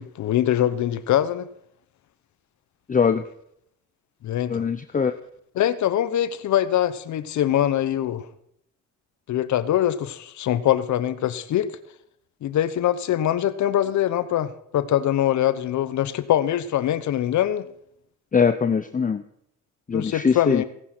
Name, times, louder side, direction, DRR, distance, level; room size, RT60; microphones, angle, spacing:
voice 1, 0.0-1.5 4.2-4.6 5.6-8.3 9.3-11.7 12.4-17.7 19.9-20.6, left 11 dB, 70° left, 1.0 m, -23 dB
voice 2, 2.9-3.2 4.5-5.1 18.3-19.2 19.9-20.6, left 6 dB, 25° left, 0.8 m, -21 dB
17.0 x 10.0 x 6.2 m
cardioid pair, 90°, 30 cm